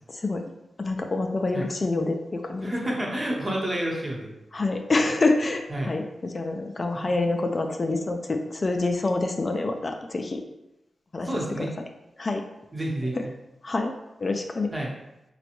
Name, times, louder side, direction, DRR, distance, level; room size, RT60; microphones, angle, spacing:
voice 1, 0.1-0.4 0.8-2.7 4.5-10.4 11.1-11.3 11.6-11.7 12.2-12.4 13.6-13.9 14.2-14.7, left 2 dB, 40° left, 4 dB, 0.3 m, -26 dB
voice 2, 2.6-4.3 5.7-5.9 6.9-7.1 11.2-11.7 12.7-13.3 14.7-14.9, right 1 dB, 30° right, -2 dB, 1.0 m, -29 dB
4.0 x 2.2 x 2.9 m, 0.91 s
cardioid pair, 60°, 0 cm